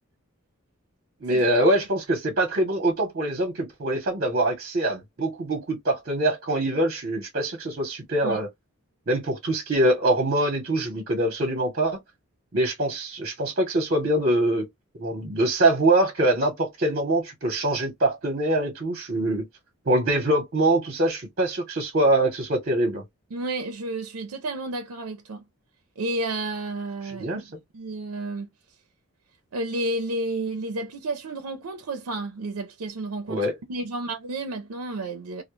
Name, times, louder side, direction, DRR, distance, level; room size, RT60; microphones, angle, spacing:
voice 1, 1.2-8.5 9.1-12.0 12.5-14.6 15.0-19.5 19.9-23.0 27.2-27.4 33.3-33.5, right 1 dB, 45° right, 0.8 m, -24 dB
voice 2, 23.3-25.4 26.0-27.4 27.7-28.5 29.5-35.4, right 2 dB, 80° right, 0.5 m, -31 dB
2.1 x 2.0 x 3.0 m
head